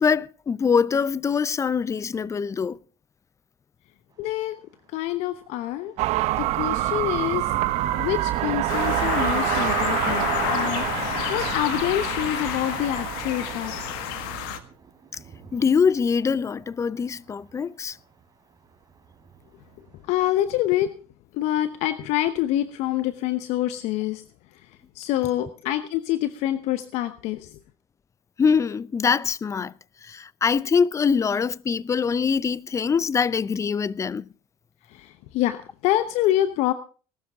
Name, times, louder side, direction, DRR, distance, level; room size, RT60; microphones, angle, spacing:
voice 1, 0.0-2.8 15.5-18.0 28.4-29.7 30.0-34.2, left 6 dB, 25° left, 0.6 m, -23 dB
Thunder, 4.1-20.3, right 5 dB, 35° right, 3.7 m, -47 dB
voice 2, 4.2-4.6 4.9-5.9 6.4-7.5 8.0-10.9 11.3-13.7 20.1-20.9 21.3-24.2 24.9-27.6 34.9-36.7, left 13 dB, 70° left, 1.0 m, -26 dB
sound 1, 6.0-14.6, right 15 dB, 65° right, 1.0 m, -27 dB
sound 2, 8.7-14.6, left 12 dB, 85° left, 1.6 m, -30 dB
19.5 x 12.5 x 3.6 m
supercardioid pair, 95°, 12 cm